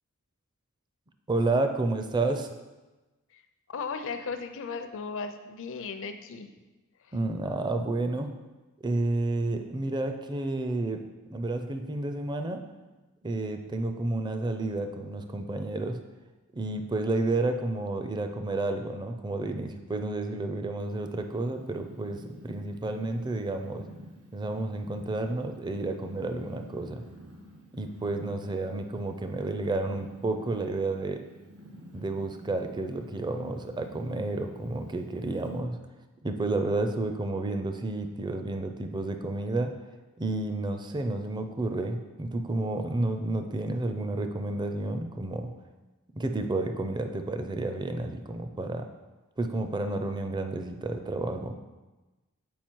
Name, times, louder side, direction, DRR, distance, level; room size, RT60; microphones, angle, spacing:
voice 1, 1.3-2.5 7.1-8.3 8.8-11.0 11.3-12.6 13.2-16.0 16.5-23.9 24.3-27.0 27.7-31.2 31.9-35.8 36.2-39.7 40.2-45.5 46.1-48.9 49.4-51.5, right 2 dB, 20° right, 6 dB, 0.5 m, -31 dB
voice 2, 3.7-6.5, left 5 dB, 65° left, 8 dB, 0.6 m, -36 dB
Purr, 20.8-35.6, equal, 80° right, 1.4 m, -51 dB
7.3 x 4.8 x 4.6 m, 1.2 s
head